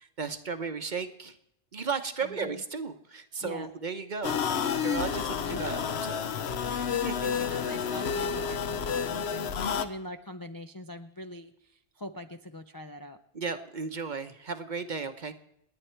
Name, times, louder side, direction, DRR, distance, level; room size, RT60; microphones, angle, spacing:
voice 1, 0.0-1.4 1.7-4.4 4.8-6.3 7.0-7.3 13.3-15.3, right 5 dB, 40° right, 9 dB, 1.0 m, -35 dB
voice 2, 2.2-2.6 3.4-3.7 5.4-5.7 6.7-13.2, left 1 dB, 30° left, 7 dB, 0.4 m, -43 dB
sound 1, 4.2-9.9, left 7 dB, 65° left, 1.1 m, -30 dB
29.5 x 9.9 x 4.5 m, 0.77 s
omnidirectional pair, 1.2 m